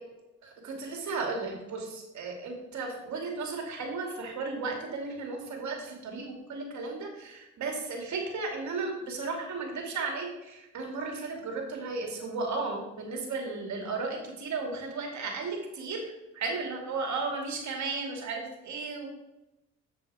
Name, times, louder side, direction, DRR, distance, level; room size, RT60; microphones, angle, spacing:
voice 1, 0.4-16.0 16.3-19.1, right 3 dB, 60° right, 2 dB, 2.5 m, -34 dB
7.6 x 7.0 x 4.8 m, 0.98 s
supercardioid pair, 65°, 33 cm